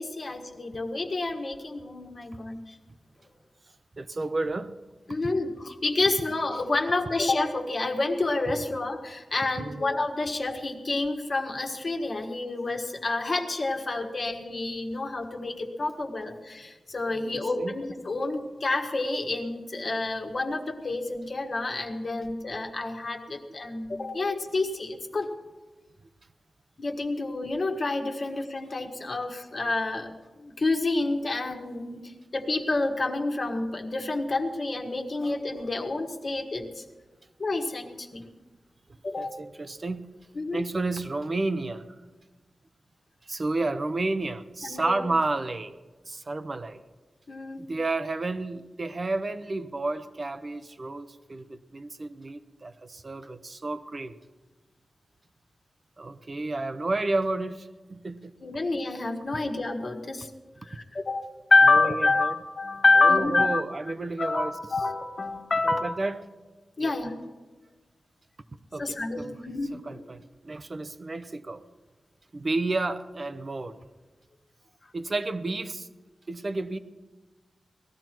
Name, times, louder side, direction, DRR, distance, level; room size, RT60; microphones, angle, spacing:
voice 1, 0.0-2.7 5.1-25.3 26.8-36.8 37.4-38.3 39.0-39.4 40.3-40.6 44.6-45.0 47.3-47.6 58.4-60.3 60.7-63.6 64.2-65.9 66.8-67.1 68.8-70.0, left 2 dB, 50° left, 3 dB, 1.6 m, -28 dB
voice 2, 4.0-4.7 9.6-9.8 17.1-17.7 38.9-40.0 40.5-41.9 43.2-45.8 46.1-46.8 47.6-54.1 56.0-58.3 61.7-62.3 63.0-64.5 65.8-66.2 66.8-66.9 68.7-69.4 69.7-71.6 72.3-73.8 74.9-75.9 76.3-76.8, right 2 dB, 40° right, 10 dB, 0.8 m, -31 dB
19.0 x 13.5 x 4.5 m, 1.2 s
wide cardioid pair, 100°, 0 cm